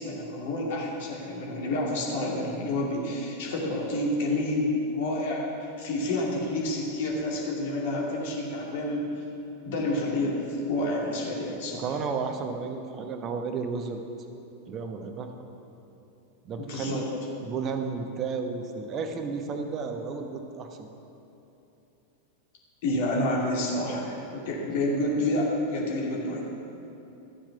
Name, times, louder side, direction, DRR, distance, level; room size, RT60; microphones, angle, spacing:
voice 1, 0.0-9.2 9.6-11.9 16.6-17.1 22.8-26.4, left 1 dB, 50° left, -3 dB, 2.5 m, -29 dB
voice 2, 11.7-14.0 14.7-15.3 16.4-17.0 17.4-20.9, right 5 dB, 30° right, 5 dB, 1.0 m, -32 dB
13.0 x 7.4 x 5.9 m, 2.9 s
figure-of-eight pair, 90°, 0 cm